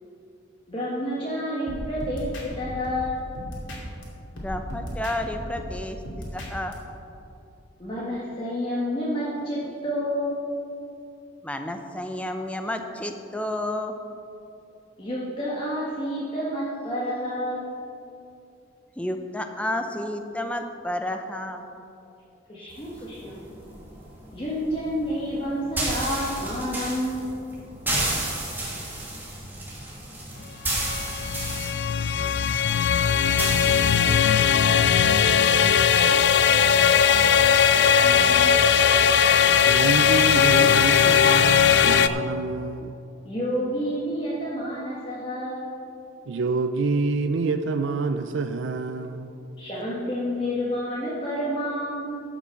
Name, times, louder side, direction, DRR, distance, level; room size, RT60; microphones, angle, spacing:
voice 1, 0.7-3.2 7.8-10.5 15.0-17.7 22.5-23.4 24.3-27.3 38.0-38.5 43.2-45.7 49.6-52.2, equal, 25° left, -8 dB, 1.6 m, -29 dB
sound 1, 1.7-4.0 4.4-6.7, equal, 75° left, 2.6 m, -36 dB
voice 2, 4.3-6.7 11.4-13.9 19.0-21.7, left 1 dB, 5° left, 6 dB, 0.6 m, -31 dB
sound 2, 22.7-34.2, right 1 dB, 10° right, 2.0 m, -32 dB
sound 3, 30.7-42.1, left 7 dB, 60° left, 0.4 m, -19 dB
voice 3, 39.6-43.0 46.3-49.3, right 4 dB, 75° right, 9 dB, 0.4 m, -27 dB
13.5 x 6.1 x 5.8 m, 2.7 s
head